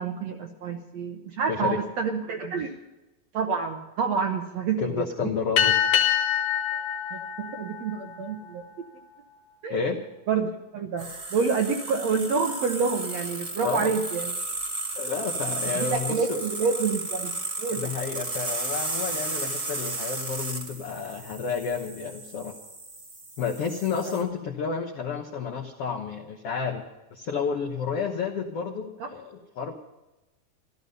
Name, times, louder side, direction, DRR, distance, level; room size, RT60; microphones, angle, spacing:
voice 1, 0.0-2.7 3.3-5.3 7.1-8.8 9.6-9.8 10.3-14.3 15.7-17.3 17.6-17.8 24.1-24.2 29.0-29.1, right 5 dB, 70° right, 3 dB, 1.6 m, -28 dB
voice 2, 1.5-1.8 4.8-5.7 9.7-10.0 13.6-13.9 15.0-16.3 17.7-22.6 23.4-26.8 27.1-29.7, left 5 dB, 85° left, 3 dB, 1.3 m, -30 dB
sound 1, 5.6-8.5, left 9 dB, 65° left, 2.4 m, -25 dB
sound 2, 11.0-24.2, right 2 dB, 30° right, 1.7 m, -34 dB
14.5 x 14.0 x 5.4 m, 1.0 s
omnidirectional pair, 4.4 m